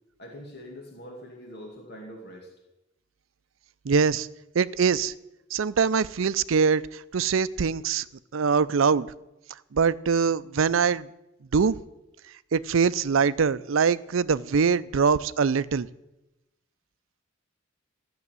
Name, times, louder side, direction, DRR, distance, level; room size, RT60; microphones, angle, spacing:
voice 1, 0.2-2.5, equal, 55° left, 0 dB, 2.4 m, -43 dB
voice 2, 3.9-4.3 4.5-5.1 5.5-8.0 8.3-9.1 9.7-11.1 11.5-11.8 12.5-15.9, right 5 dB, 75° right, 17 dB, 0.5 m, -23 dB
13.5 x 7.1 x 9.5 m, 0.96 s
head